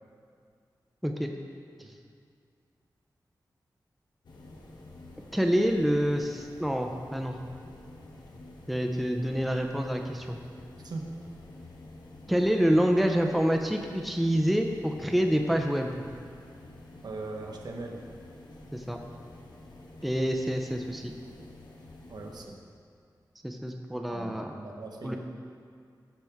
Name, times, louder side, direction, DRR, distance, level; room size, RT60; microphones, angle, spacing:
sound 1, 4.2-22.4, left 2 dB, 80° left, 1.2 m, -49 dB
voice 1, 5.3-7.4 8.7-10.4 12.3-16.0 18.7-19.0 20.0-21.1 23.4-24.5 25.0-25.2, equal, ahead, 3 dB, 0.6 m, -27 dB
voice 2, 17.0-18.0 22.1-22.6 24.1-25.2, right 2 dB, 65° right, 1 dB, 1.1 m, -39 dB
14.5 x 6.0 x 3.5 m, 2.2 s
wide cardioid pair, 115°, 8 cm